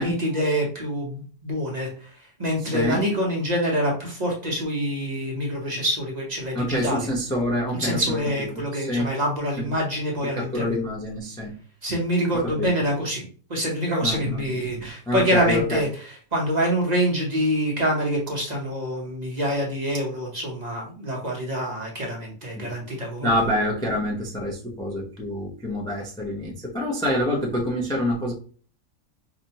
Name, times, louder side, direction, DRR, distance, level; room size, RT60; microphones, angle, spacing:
voice 1, 0.0-7.0 7.8-10.8 11.8-23.3, equal, 35° right, -2 dB, 0.8 m, -26 dB
voice 2, 6.5-8.2 8.8-9.1 9.6-9.7 10.4-11.5 12.6-12.7 14.0-14.4 14.7-15.8 22.6-22.7 23.2-28.3, left 1 dB, 5° left, -2 dB, 0.4 m, -26 dB
4.9 x 2.2 x 2.8 m, 0.42 s
omnidirectional pair, 1.5 m